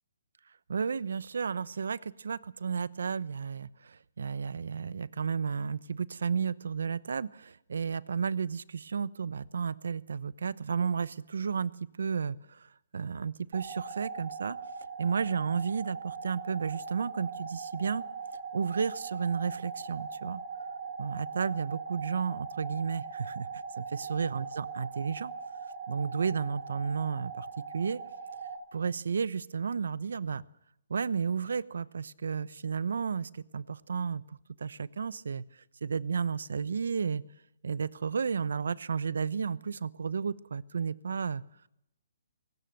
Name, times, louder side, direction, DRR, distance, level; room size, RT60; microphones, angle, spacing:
voice 1, 0.7-14.6 15.0-18.0 18.5-20.4 21.0-25.3 25.9-28.0 28.7-30.4 30.9-35.5 35.8-37.2 37.6-41.4, right 6 dB, 75° right, 19 dB, 0.9 m, -32 dB
sound 1, 13.5-28.6, right 5 dB, 35° right, 5.0 m, -40 dB
21.0 x 18.5 x 7.8 m, 0.79 s
hypercardioid pair, 175°, 0 cm